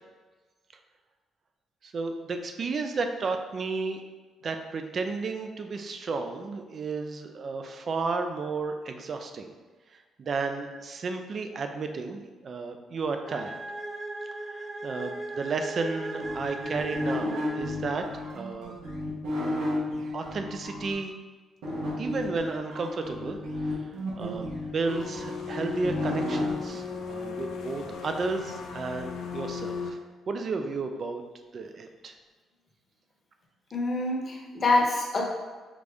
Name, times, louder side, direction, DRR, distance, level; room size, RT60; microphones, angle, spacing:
voice 1, 1.8-4.0 4.4-9.5 10.2-13.6 14.4-18.8 20.1-21.2 22.0-30.0 30.3-31.2 31.5-32.1, right 4 dB, 50° right, 6 dB, 0.5 m, -33 dB
sound 1, 13.3-18.1, right 2 dB, 15° right, 0.9 m, -37 dB
sound 2, 16.2-20.9 21.6-26.5, left 1 dB, 90° right, 1.1 m, -32 dB
sound 3, 24.9-29.9, left 6 dB, 75° left, 0.5 m, -36 dB
voice 2, 33.7-35.2, left 2 dB, 40° left, -1 dB, 1.0 m, -25 dB
5.0 x 2.6 x 3.4 m, 1.3 s
cardioid pair, 90°, 0 cm